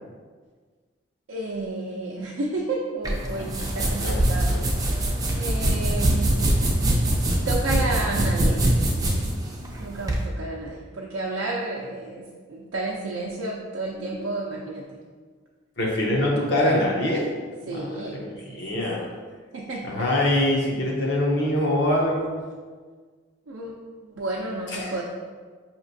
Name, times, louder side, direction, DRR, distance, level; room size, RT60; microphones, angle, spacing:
voice 1, 1.3-4.6 5.3-6.4 7.5-8.6 9.8-14.8 17.7-18.8 19.5-20.1 23.5-23.8 24.0-25.0, right 2 dB, 80° right, -3 dB, 0.4 m, -31 dB
sound 1, 3.0-10.2, right 1 dB, 20° right, 0.4 m, -23 dB
voice 2, 3.8-4.2 4.5-4.6 15.8-17.2 17.6-17.9 18.1-19.0 19.8-22.3 24.7-25.0, left 1 dB, 60° left, -3 dB, 0.6 m, -24 dB
5.0 x 2.9 x 2.6 m, 1.5 s
head